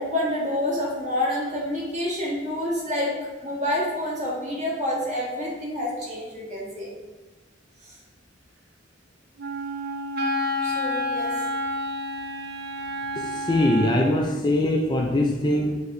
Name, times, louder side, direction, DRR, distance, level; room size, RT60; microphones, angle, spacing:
voice 1, 0.0-3.1 3.4-6.9 10.6-11.3, left 1 dB, 40° right, -5 dB, 1.3 m, -28 dB
Wind instrument woodwind instrument, 9.4-14.2, left 1 dB, 55° right, 0.4 m, -29 dB
voice 2, 13.2-15.8, left 1 dB, 25° left, 0 dB, 0.3 m, -22 dB
5.9 x 2.9 x 2.6 m, 1.2 s
head